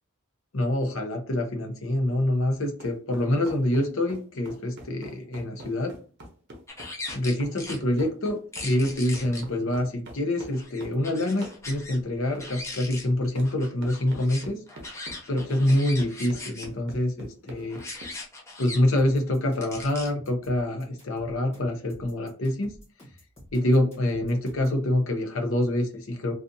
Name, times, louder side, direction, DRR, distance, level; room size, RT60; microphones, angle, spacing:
voice 1, 0.5-5.9 7.1-14.6 15.3-17.8 18.6-22.7 23.5-26.3, left 1 dB, 65° left, 3 dB, 0.7 m, -26 dB
sound 1, 2.8-11.0 11.4-11.6 12.3-12.5 13.3-13.5 13.8-18.1, equal, 50° right, 0.7 m, -44 dB
sound 2, 6.7-7.8 8.5-9.4 10.4-12.0 12.2-13.1 13.4-16.7 17.7-18.8 19.6-20.1, left 2 dB, 15° left, 0.5 m, -39 dB
sound 3, 19.0-24.8, equal, 30° left, 1.1 m, -50 dB
2.5 x 2.4 x 2.6 m, 0.40 s
head